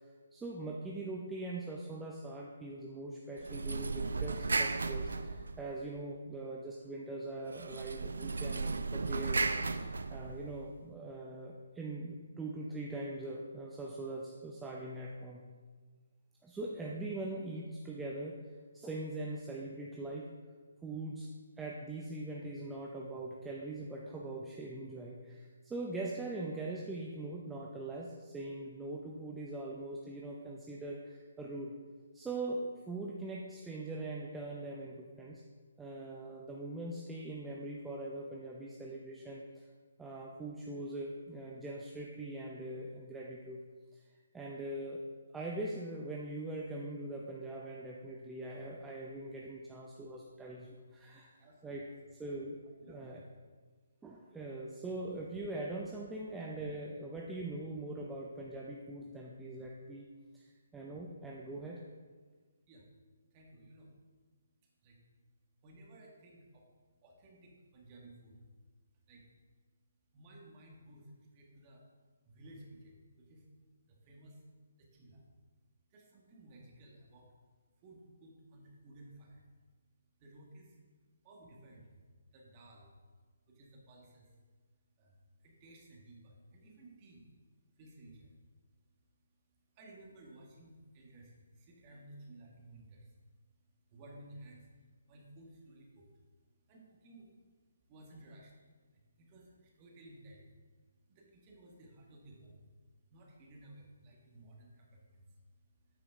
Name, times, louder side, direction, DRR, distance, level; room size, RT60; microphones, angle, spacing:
voice 1, 0.3-9.5 9.8-15.4 16.4-18.4 18.7-20.3 20.8-21.3 21.6-31.7 32.1-35.4 35.8-39.6 40.0-43.6 43.9-44.0 44.3-45.0 45.3-51.3 51.6-52.6 52.9-53.2 54.0-60.1 60.3-61.8, right 2 dB, 10° right, -3 dB, 0.6 m, -42 dB
sound 1, 3.4-5.9 7.5-10.7, right 3 dB, 75° right, 0.5 m, -35 dB
voice 2, 51.4-51.9 52.8-53.2 62.7-62.8 63.3-63.9 64.8-65.0 65.6-66.7 67.0-68.4 69.1-69.2 70.1-71.8 72.2-73.4 73.9-74.4 74.8-75.2 75.9-77.3 77.8-79.4 80.2-80.8 81.2-82.0 82.3-82.9 83.5-84.3 85.0-87.3 87.7-88.4 89.7-93.1 93.9-94.7 95.1-96.1 96.7-97.3 97.9-98.5 98.9-100.5 101.1-102.6 103.1-105.3, right 1 dB, 30° right, -1 dB, 1.7 m, -56 dB
9.2 x 5.0 x 3.7 m, 1.5 s
figure-of-eight pair, 145°, 0 cm